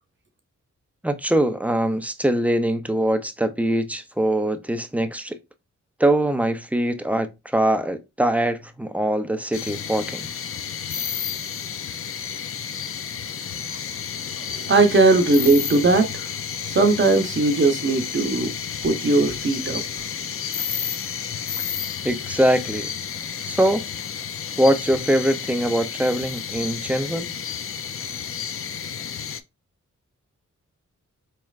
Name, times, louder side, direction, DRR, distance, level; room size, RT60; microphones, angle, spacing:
voice 1, 1.0-5.4 6.0-10.3 22.0-22.9 23.4-23.8 24.6-27.3, right 1 dB, 5° right, 0.5 m, -22 dB
sound 1, 9.5-29.4, left 7 dB, 50° left, 0.4 m, -31 dB
voice 2, 14.4-16.3 16.6-18.5 18.8-19.8, right 3 dB, 40° right, 0.8 m, -19 dB
4.4 x 3.2 x 2.4 m
wide cardioid pair, 85°, 30 cm